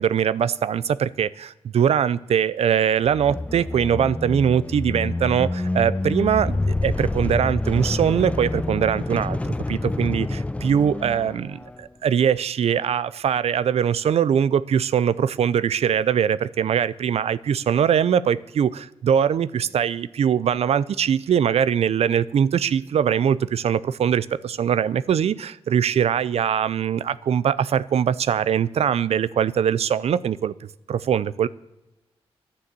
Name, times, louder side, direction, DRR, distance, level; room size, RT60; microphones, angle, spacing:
voice 1, 0.0-30.5 30.9-31.5, right 8 dB, 75° right, 17 dB, 0.5 m, -22 dB
sound 1, 3.0-11.8, left 2 dB, 10° left, 0.4 m, -27 dB
11.5 x 9.6 x 7.6 m, 0.99 s
cardioid pair, 55°, 11 cm